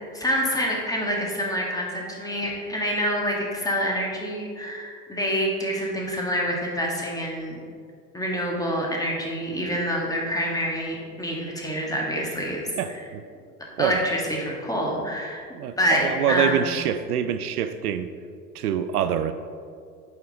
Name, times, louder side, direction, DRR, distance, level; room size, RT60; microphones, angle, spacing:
voice 1, 0.1-7.6 8.1-12.7 13.8-15.4 15.8-16.6, equal, 10° left, -1 dB, 1.5 m, -27 dB
voice 2, 12.8-13.2 13.8-14.0 15.5-18.1 18.5-19.3, right 9 dB, 75° right, 10 dB, 0.5 m, -25 dB
8.6 x 5.0 x 3.9 m, 2.2 s
figure-of-eight pair, 75°, 45 cm